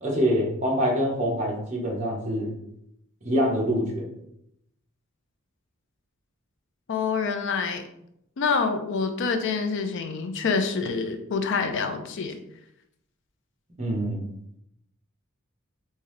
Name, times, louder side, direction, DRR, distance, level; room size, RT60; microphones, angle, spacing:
voice 1, 0.0-2.5 3.2-4.1 13.8-14.3, equal, 35° right, -3 dB, 1.0 m, -25 dB
voice 2, 6.9-7.8 8.4-12.4, left 5 dB, 60° left, 7 dB, 0.5 m, -26 dB
3.7 x 2.7 x 3.2 m, 0.77 s
head